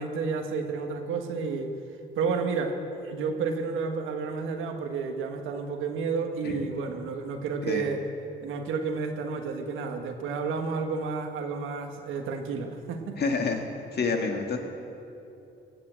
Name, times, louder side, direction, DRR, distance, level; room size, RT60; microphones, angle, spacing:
voice 1, 0.0-1.7 2.1-8.0 8.4-13.2, right 4 dB, 85° right, 5 dB, 1.5 m, -31 dB
voice 2, 13.2-13.6 13.9-14.6, left 4 dB, 55° left, 3 dB, 1.9 m, -28 dB
16.5 x 8.6 x 7.7 m, 2.7 s
cardioid pair, 90°, 20 cm